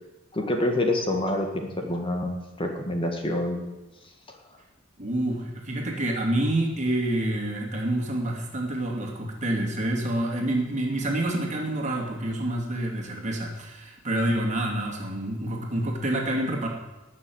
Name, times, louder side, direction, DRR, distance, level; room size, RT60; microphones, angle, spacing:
voice 1, 0.3-3.6, left 1 dB, 25° left, 3 dB, 1.7 m, -27 dB
voice 2, 5.0-16.7, right 1 dB, 35° right, 0 dB, 2.8 m, -27 dB
19.5 x 6.7 x 8.0 m, 1.1 s
head